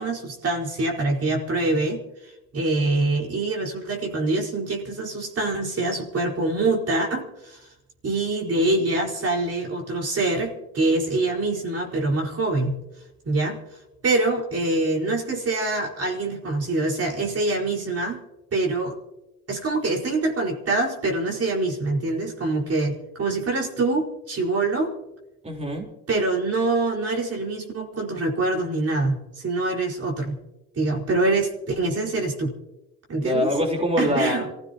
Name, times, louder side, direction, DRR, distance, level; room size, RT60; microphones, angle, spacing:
voice 1, 0.0-2.0 2.5-7.6 8.0-12.8 13.2-13.6 14.0-18.2 18.5-19.0 19.5-24.9 26.1-30.4 30.7-32.5 33.1-33.5 34.0-34.5, right 2 dB, 40° right, -1 dB, 4.8 m, -25 dB
voice 2, 25.4-25.9 33.2-34.5, left 1 dB, 15° right, -1 dB, 4.1 m, -24 dB
27.0 x 16.0 x 2.9 m, 0.94 s
supercardioid pair, 75°, 36 cm